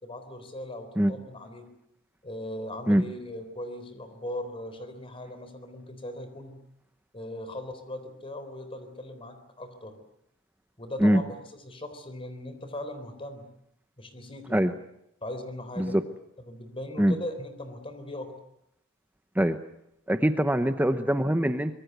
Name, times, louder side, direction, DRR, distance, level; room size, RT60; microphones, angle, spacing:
voice 1, 0.0-1.7 2.2-6.5 7.1-9.9 10.8-13.5 14.0-14.6 15.2-16.0 16.4-18.3, left 1 dB, 30° left, 9 dB, 3.9 m, -39 dB
voice 2, 20.1-21.7, equal, 10° right, 9 dB, 0.9 m, -23 dB
25.0 x 21.5 x 8.0 m, 0.78 s
head